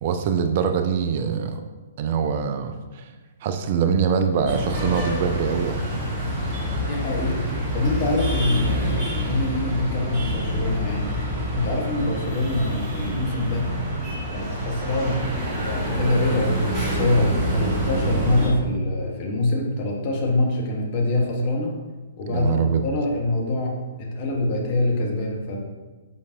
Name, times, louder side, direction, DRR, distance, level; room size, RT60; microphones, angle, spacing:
voice 1, 0.0-1.6 2.0-3.1 3.4-5.8 22.3-22.8, right 6 dB, 40° right, 7 dB, 0.4 m, -23 dB
sound 1, 4.5-18.5, equal, 25° right, 1.7 m, -27 dB
voice 2, 6.8-7.4 7.7-11.1 11.5-13.7 14.3-15.2 15.6-21.8 22.2-25.6, left 2 dB, 35° left, -1 dB, 1.3 m, -25 dB
7.2 x 5.2 x 2.6 m, 1.3 s
figure-of-eight pair, 120°, 0 cm